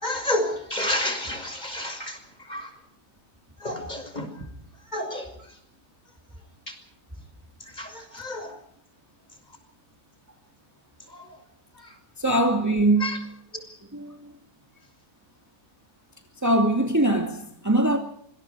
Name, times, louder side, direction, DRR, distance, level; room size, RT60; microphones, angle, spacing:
voice 1, 0.0-2.2 2.5-2.7 3.6-4.3 4.9-5.3 7.8-8.5 13.0-13.2, left 1 dB, 25° left, 6.2 m, -29 dB
voice 2, 12.2-13.2 13.9-14.4 16.4-18.0, right 1 dB, 10° right, 2.4 m, -22 dB
27.0 x 26.0 x 4.9 m
omnidirectional pair, 1.7 m